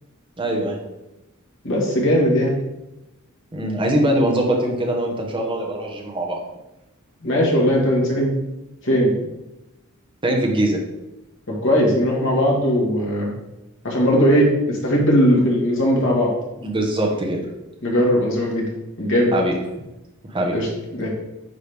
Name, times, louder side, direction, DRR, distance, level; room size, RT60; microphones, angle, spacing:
voice 1, 0.4-0.8 3.5-6.4 10.2-10.8 16.6-17.4 19.3-19.5 20.2-20.5, right 1 dB, 25° right, 1 dB, 1.1 m, -22 dB
voice 2, 1.6-2.5 7.2-8.3 8.8-9.2 11.5-13.3 13.8-16.3 17.8-18.7 19.0-19.3 20.5-21.1, equal, 65° left, -3 dB, 1.7 m, -19 dB
9.4 x 3.2 x 3.4 m, 0.95 s
head